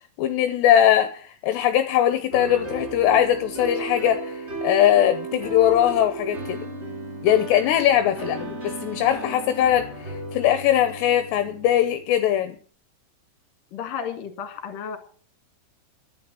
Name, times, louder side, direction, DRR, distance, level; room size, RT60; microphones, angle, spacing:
voice 1, 0.2-6.6 7.2-12.6, left 11 dB, 80° left, 8 dB, 2.9 m, -21 dB
sound 1, 2.3-12.1, right 2 dB, 40° right, 0.9 m, -34 dB
voice 2, 13.7-15.0, left 7 dB, 55° left, 6 dB, 3.3 m, -32 dB
11.5 x 9.4 x 7.7 m, 0.44 s
omnidirectional pair, 5.3 m